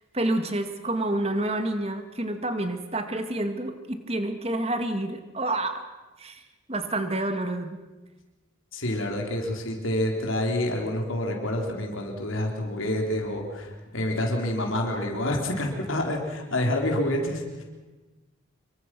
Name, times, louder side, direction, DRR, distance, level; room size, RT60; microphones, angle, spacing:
voice 1, 0.1-5.8 6.2-6.4 6.7-7.8, right 1 dB, 30° right, 7 dB, 2.0 m, -28 dB
voice 2, 8.7-17.6, left 1 dB, 85° left, 1 dB, 3.7 m, -28 dB
26.0 x 23.5 x 6.1 m, 1.2 s
head